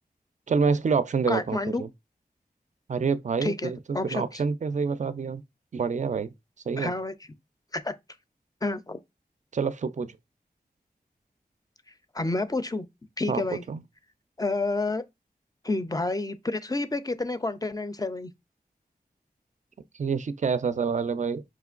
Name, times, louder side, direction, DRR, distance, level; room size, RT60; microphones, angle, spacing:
voice 1, 0.5-1.9 2.9-3.8 4.1-5.4 5.7-6.3 6.7-6.9 9.5-10.1 13.3-13.4 13.7-13.8 20.0-21.4, right 5 dB, 50° right, 0.4 m, -27 dB
voice 2, 1.3-1.8 3.4-4.4 6.8-7.1 7.7-7.9 8.6-9.0 12.1-12.9 13.2-13.6 14.4-15.0 15.6-18.3, left 2 dB, 25° left, 0.4 m, -29 dB
5.0 x 2.9 x 2.4 m
wide cardioid pair, 60°, 16 cm